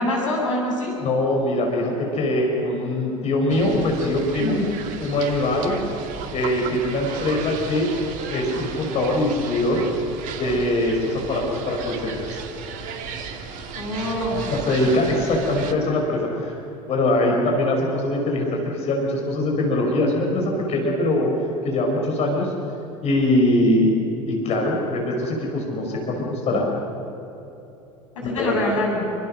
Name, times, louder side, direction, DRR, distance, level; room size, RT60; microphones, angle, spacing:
voice 1, 0.0-1.0 4.4-4.6 13.8-14.4 28.2-29.1, left 1 dB, 70° left, -1 dB, 7.1 m, -25 dB
voice 2, 1.0-4.6 5.0-5.8 6.3-7.9 8.3-9.8 10.3-12.4 14.5-16.6 16.9-21.3 21.6-22.5 23.0-23.9 24.3-26.7 28.2-28.6, left 1 dB, 40° left, 0 dB, 5.5 m, -22 dB
sound 1, 3.5-15.7, right 6 dB, 50° right, 2.4 m, -34 dB
28.5 x 24.0 x 6.6 m, 2.9 s
figure-of-eight pair, 65°, 17 cm